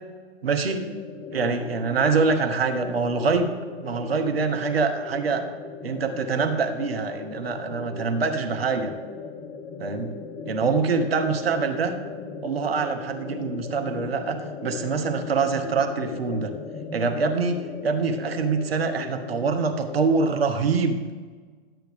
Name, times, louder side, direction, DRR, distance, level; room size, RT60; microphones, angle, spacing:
voice 1, 0.4-0.8 1.3-3.5 3.8-5.4 5.8-8.9 9.8-10.1 10.4-12.0 12.4-16.5 16.9-21.0, right 4 dB, 70° right, 6 dB, 1.1 m, -25 dB
sound 1, 0.7-20.4, left 4 dB, 20° left, 0.6 m, -37 dB
12.0 x 7.5 x 3.6 m, 1.5 s
figure-of-eight pair, 105°, 31 cm